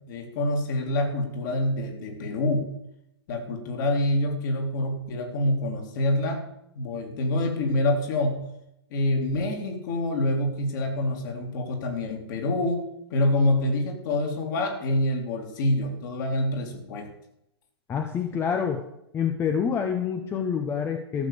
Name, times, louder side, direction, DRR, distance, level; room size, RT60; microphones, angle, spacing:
voice 1, 0.1-2.6 3.3-6.5 6.7-8.4 8.9-12.8 13.1-17.1, left 1 dB, 45° left, 3 dB, 2.9 m, -26 dB
voice 2, 17.9-18.8 19.1-21.3, left 7 dB, 15° left, 6 dB, 0.9 m, -27 dB
13.5 x 6.8 x 6.9 m, 0.80 s
figure-of-eight pair, 110°, 14 cm